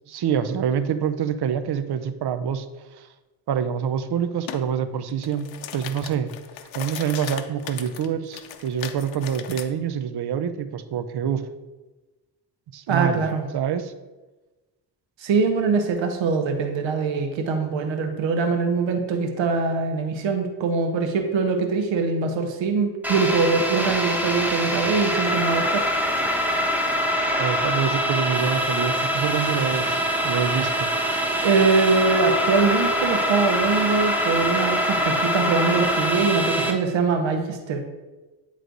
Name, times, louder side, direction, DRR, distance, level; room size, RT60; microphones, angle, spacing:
voice 1, 0.1-2.7 3.0-3.1 3.5-6.3 6.7-11.4 12.7-13.2 13.5-13.9 27.4-30.9, right 8 dB, 60° right, 11 dB, 0.6 m, -26 dB
sound 1, 4.5-4.6 5.1-9.7, left 10 dB, 85° left, 0.6 m, -37 dB
voice 2, 12.9-13.5 15.2-25.8 31.4-37.8, right 4 dB, 80° right, 5 dB, 1.0 m, -23 dB
sound 2, 23.0-36.7, equal, 5° right, 0.9 m, -24 dB
9.4 x 3.2 x 3.9 m, 1.2 s
cardioid pair, 75°, 45 cm